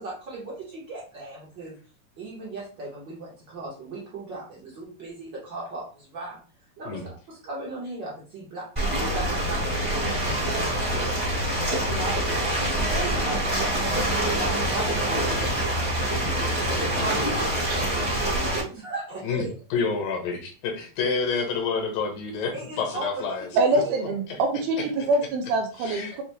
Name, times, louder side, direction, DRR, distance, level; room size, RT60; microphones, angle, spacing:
voice 1, 0.0-1.7 2.2-6.4 6.8-11.3 11.7-12.5 12.9-16.3 16.7-19.5 22.5-23.2 23.5-24.0, right 3 dB, 65° right, -5 dB, 1.1 m, -38 dB
Ocean, 8.8-18.6, right 1 dB, 15° right, 1.2 m, -25 dB
voice 2, 19.7-23.5 24.3-24.4 25.8-26.1, left 5 dB, 80° left, 1 dB, 2.8 m, -28 dB
voice 3, 23.6-26.2, right 2 dB, 85° right, 2 dB, 1.5 m, -24 dB
6.7 x 3.0 x 2.2 m, 0.38 s
omnidirectional pair, 4.0 m